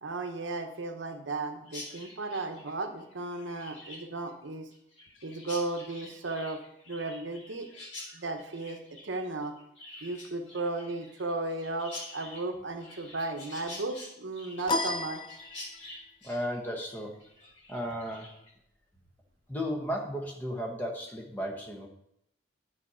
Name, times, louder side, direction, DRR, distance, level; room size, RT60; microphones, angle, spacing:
voice 1, 0.0-4.7 5.2-6.6 6.9-7.7 8.1-9.5 10.0-15.4, right 2 dB, 80° right, 6 dB, 0.9 m, -35 dB
Chirp tweet, 1.7-18.5, left 2 dB, 75° left, 2.5 m, -47 dB
sound 1, 14.7-16.0, left 2 dB, 25° left, 0.4 m, -32 dB
voice 2, 16.2-17.3 17.7-18.4 19.5-21.9, equal, 10° left, 0 dB, 1.0 m, -35 dB
10.0 x 4.2 x 4.9 m, 0.77 s
head